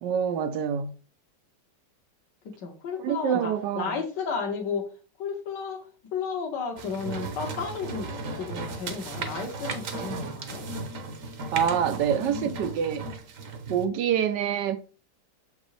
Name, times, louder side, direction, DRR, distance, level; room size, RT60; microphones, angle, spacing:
voice 1, 0.0-0.9 3.0-4.0 11.5-13.1 13.7-14.8, right 8 dB, 70° right, 1.2 m, -26 dB
voice 2, 2.5-4.9 5.2-5.8 6.1-10.6 12.2-12.6, left 5 dB, 60° left, 1.8 m, -33 dB
sound 1, 6.8-13.9, right 3 dB, 50° right, 1.1 m, -36 dB
7.2 x 5.2 x 3.2 m
omnidirectional pair, 2.1 m